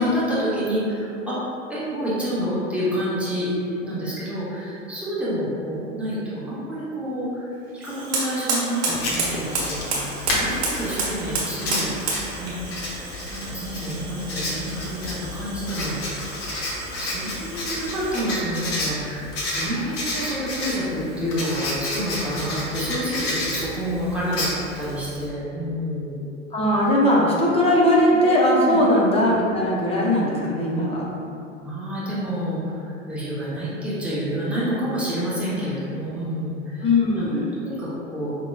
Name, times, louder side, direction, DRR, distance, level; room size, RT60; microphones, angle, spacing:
voice 1, 0.0-1.4 1.7-3.5 3.8-11.9 12.4-12.9 13.3-16.3 17.0-26.3 28.1-28.2 28.6-28.8 31.6-37.2 37.6-38.4, equal, 5° right, -11 dB, 1.0 m, -28 dB
Fire, 7.8-18.4, right 3 dB, 55° right, 1.3 m, -31 dB
Writing, 8.9-25.3, left 1 dB, 40° left, 0.9 m, -31 dB
voice 2, 26.5-31.0 36.8-37.5, left 1 dB, 15° left, -4 dB, 0.7 m, -19 dB
5.1 x 3.0 x 2.4 m, 2.6 s
figure-of-eight pair, 85°, 39 cm